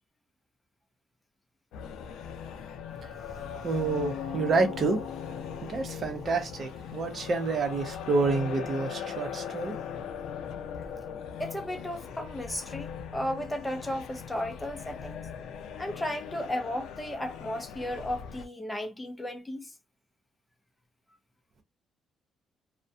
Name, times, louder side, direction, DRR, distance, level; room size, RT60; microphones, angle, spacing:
sound 1, 1.7-18.5, left 7 dB, 80° left, 0.4 m, -39 dB
voice 1, 3.6-5.0 5.7-9.8, right 3 dB, 40° right, 0.6 m, -28 dB
voice 2, 11.4-15.3 15.8-19.7, left 1 dB, 10° left, 0.5 m, -34 dB
2.3 x 2.1 x 2.6 m
cardioid pair, 150°, 0 cm